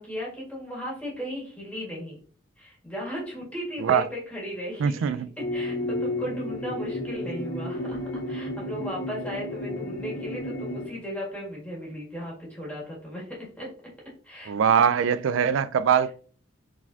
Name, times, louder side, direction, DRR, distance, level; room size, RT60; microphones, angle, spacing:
voice 1, 0.0-2.2 2.6-5.1 5.4-13.3 13.6-13.7 14.2-14.5, equal, 5° left, 1.7 m, -36 dB
voice 2, 4.8-5.3 14.5-16.1, right 7 dB, 90° right, 0.4 m, -22 dB
sound 1, 5.4-10.9, left 1 dB, 70° left, 1.8 m, -32 dB
4.8 x 4.0 x 2.7 m
head